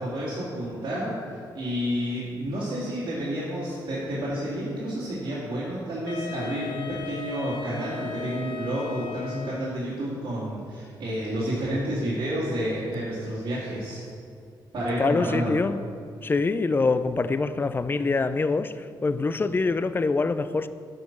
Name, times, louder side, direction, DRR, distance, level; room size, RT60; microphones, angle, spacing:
voice 1, 0.0-14.0 14.7-15.5, right 1 dB, 60° right, 2.3 m, -30 dB
Wind instrument woodwind instrument, 6.1-9.9, left 8 dB, 65° left, 0.9 m, -37 dB
voice 2, 15.0-15.8 16.2-20.7, left 3 dB, 25° left, 0.4 m, -25 dB
9.4 x 5.3 x 6.0 m
cardioid pair, 90°, 8 cm